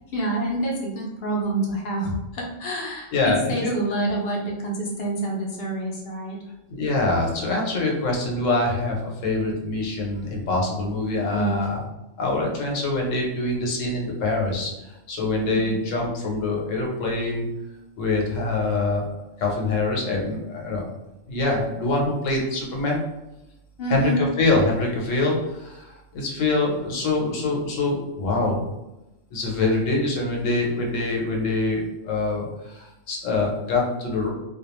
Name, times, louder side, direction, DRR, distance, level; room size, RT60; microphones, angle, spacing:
voice 1, 0.1-6.4 11.2-11.6 15.4-15.8 23.8-24.2, right 1 dB, 60° left, -1 dB, 0.7 m, -27 dB
voice 2, 3.1-3.8 6.7-11.8 12.2-14.7 15.1-17.5 18.0-19.1 19.4-20.8 21.3-23.0 23.9-28.7 29.3-34.3, left 2 dB, 80° left, -1 dB, 1.0 m, -24 dB
2.3 x 2.2 x 2.9 m, 0.96 s
omnidirectional pair, 1.3 m